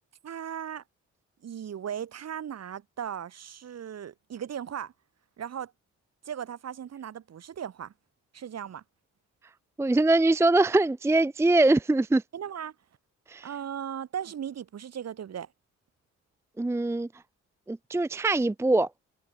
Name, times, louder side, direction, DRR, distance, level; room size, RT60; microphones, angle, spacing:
voice 1, 0.2-0.8 1.4-4.9 5.4-5.7 6.2-7.9 8.3-8.8 12.3-12.7 13.4-15.5, right 9 dB, 55° right, 4.5 m, -37 dB
voice 2, 9.8-12.2 13.3-13.5 16.6-17.1 17.7-18.9, right 2 dB, 10° right, 0.6 m, -23 dB
cardioid pair, 90°, 30 cm